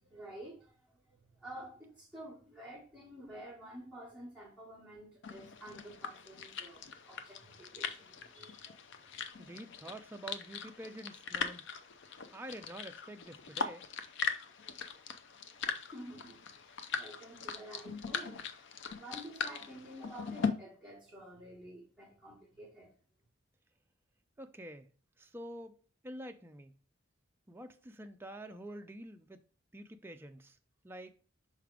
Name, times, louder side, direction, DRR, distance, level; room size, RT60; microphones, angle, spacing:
voice 1, 0.0-9.3 15.6-18.5 19.0-22.9, right 1 dB, 5° left, 1.7 m, -50 dB
sound 1, 5.2-20.5, left 6 dB, 60° left, 0.6 m, -40 dB
voice 2, 9.4-11.6 12.3-13.9 24.4-24.9 25.2-25.8 26.0-26.7 27.5-29.4 29.7-30.6 30.8-31.1, right 1 dB, 10° right, 0.3 m, -47 dB
5.7 x 3.5 x 4.9 m
head